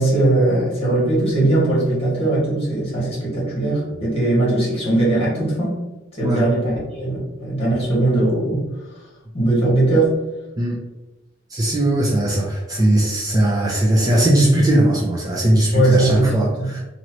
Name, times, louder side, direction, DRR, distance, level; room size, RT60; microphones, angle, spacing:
voice 1, 0.0-5.8 6.2-8.6 9.3-10.2 15.7-16.8, right 2 dB, 30° left, -6 dB, 1.5 m, -19 dB
voice 2, 11.5-16.8, right 1 dB, 20° right, -3 dB, 0.4 m, -18 dB
2.9 x 2.6 x 2.9 m, 1.1 s
head